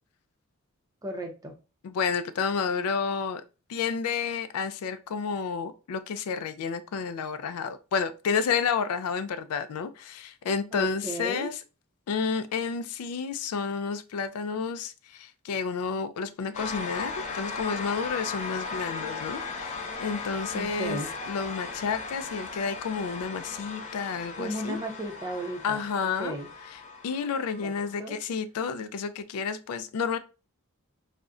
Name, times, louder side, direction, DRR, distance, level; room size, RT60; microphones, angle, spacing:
voice 1, 1.0-1.5 10.7-11.5 20.5-21.1 24.4-26.5 27.4-28.2, right 1 dB, 15° right, 0.5 m, -35 dB
voice 2, 1.8-3.4 3.7-11.5 12.1-21.0 21.3-24.8 25.6-26.4 27.0-30.2, left 5 dB, 90° left, 0.4 m, -30 dB
sound 1, 16.5-28.0, left 4 dB, 35° left, 0.5 m, -37 dB
2.4 x 2.1 x 3.5 m
head